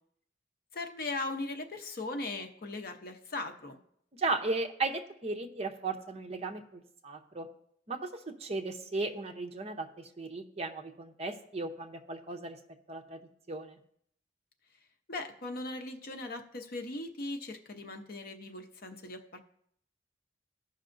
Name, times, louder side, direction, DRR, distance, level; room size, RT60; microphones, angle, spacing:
voice 1, 0.7-3.8 15.1-19.4, left 2 dB, 50° left, 6 dB, 0.8 m, -39 dB
voice 2, 4.2-7.5 7.9-12.6 12.9-13.2 13.5-13.8, right 3 dB, 35° right, 5 dB, 0.7 m, -36 dB
15.0 x 5.4 x 2.6 m, 0.69 s
head